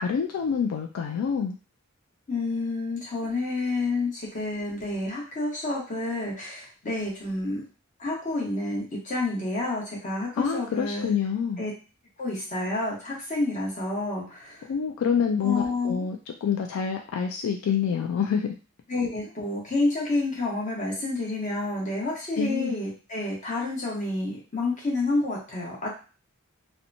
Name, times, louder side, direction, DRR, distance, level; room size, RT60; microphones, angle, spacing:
voice 1, 0.0-1.5 10.4-11.6 14.7-18.5 22.4-22.7, left 7 dB, 75° left, 2 dB, 0.3 m, -27 dB
voice 2, 2.3-7.6 8.0-11.1 11.6-11.7 12.2-14.7 15.4-16.0 18.9-25.9, left 2 dB, 35° left, -3 dB, 1.0 m, -29 dB
2.8 x 2.1 x 2.6 m, 0.35 s
head